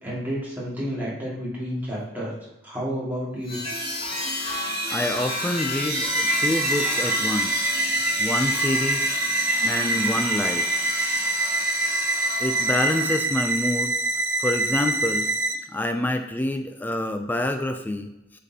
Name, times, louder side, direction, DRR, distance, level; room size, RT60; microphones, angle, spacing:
voice 1, 0.0-2.3 2.6-3.6 8.3-8.4 9.6-10.1, equal, 10° right, -7 dB, 2.1 m, -31 dB
sound 1, 3.5-13.1, left 1 dB, 25° left, 1.6 m, -30 dB
voice 2, 4.9-7.7 8.2-9.2 9.7-10.7 12.4-13.9 14.4-15.3 15.7-18.1, left 1 dB, 10° left, 6 dB, 0.3 m, -27 dB
sound 2, 5.9-15.5, right 2 dB, 80° right, 0.6 m, -25 dB
8.0 x 4.1 x 2.8 m, 0.90 s
head